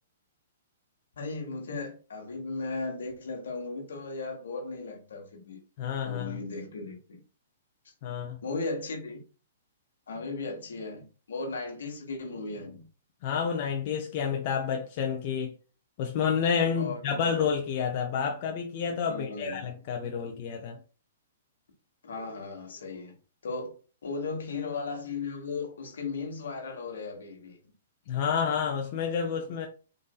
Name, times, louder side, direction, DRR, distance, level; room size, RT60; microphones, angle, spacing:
voice 1, 1.2-5.6 6.0-7.2 8.4-9.2 10.1-12.9 16.8-17.4 19.1-19.6 22.0-23.2 23.4-23.7 24.0-27.6, left 3 dB, 80° left, 1.2 m, -36 dB
voice 2, 5.8-6.4 8.0-8.4 13.2-15.5 16.0-20.8 28.1-29.7, left 7 dB, 45° left, 0.5 m, -29 dB
3.9 x 2.6 x 2.3 m
hypercardioid pair, 140°, 0 cm